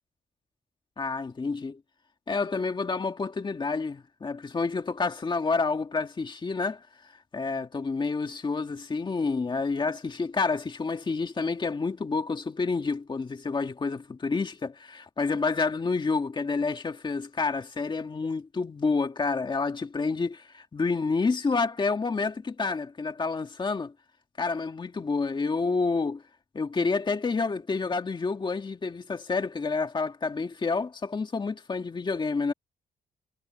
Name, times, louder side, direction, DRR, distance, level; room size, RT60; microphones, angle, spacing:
voice 1, 1.0-1.8 2.3-23.9 24.4-26.2 26.5-32.5, left 4 dB, 25° left, 1.9 m, -29 dB
cardioid pair, 125°, 18 cm